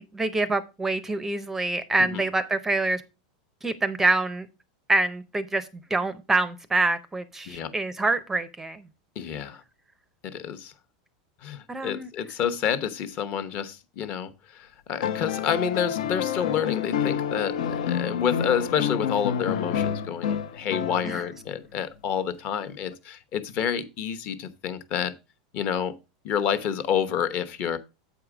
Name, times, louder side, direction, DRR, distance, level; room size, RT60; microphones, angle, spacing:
voice 1, 0.0-3.0 3.6-4.5 4.9-8.9 11.7-12.1 21.0-21.2, right 2 dB, 10° right, 0.5 m, -26 dB
voice 2, 9.2-9.6 10.2-10.7 11.4-25.1 25.5-25.9 26.2-27.8, left 8 dB, 40° left, 0.9 m, -29 dB
sound 1, 15.0-21.4 22.9-23.0, left 8 dB, 85° left, 0.8 m, -28 dB
8.0 x 4.7 x 4.9 m
supercardioid pair, 145°, 4 cm